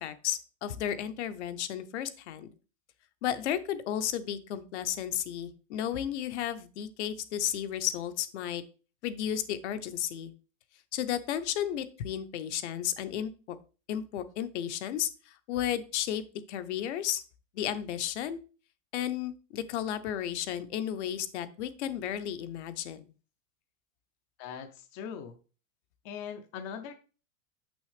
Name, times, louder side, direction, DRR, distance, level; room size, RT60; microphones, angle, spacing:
voice 1, 0.0-2.5 3.2-8.6 9.0-10.3 10.9-13.6 13.9-17.2 17.5-18.4 18.9-23.0, left 10 dB, 55° left, 11 dB, 0.8 m, -33 dB
voice 2, 24.4-25.4 26.0-26.9, left 7 dB, 25° left, 7 dB, 0.5 m, -40 dB
6.2 x 6.1 x 3.3 m, 0.35 s
supercardioid pair, 155°, 40 cm